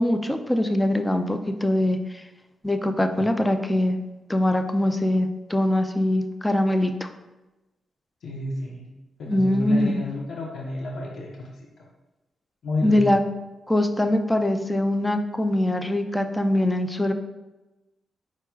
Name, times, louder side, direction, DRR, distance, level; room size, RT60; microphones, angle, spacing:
voice 1, 0.0-2.0 2.6-4.0 4.3-6.9 9.3-10.0 12.8-13.2 13.7-17.1, left 1 dB, 10° left, 7 dB, 0.4 m, -22 dB
voice 2, 8.2-8.9 9.2-11.5 12.6-13.2, left 2 dB, 75° left, -2 dB, 0.8 m, -31 dB
4.5 x 4.5 x 2.3 m, 1.1 s
cardioid pair, 80°, 0 cm